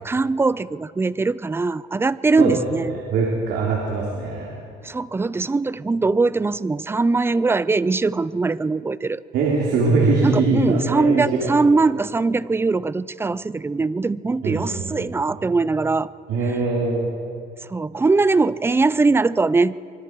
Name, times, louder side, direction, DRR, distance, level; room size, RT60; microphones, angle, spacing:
voice 1, 0.0-2.9 4.8-9.2 10.2-16.1 17.6-19.8, right 3 dB, 15° right, 18 dB, 0.5 m, -21 dB
voice 2, 2.9-4.6 9.3-11.5 14.4-14.9 16.3-17.1, right 3 dB, 80° right, -2 dB, 3.5 m, -22 dB
25.0 x 24.0 x 4.8 m, 2.3 s
cardioid pair, 110°, 17 cm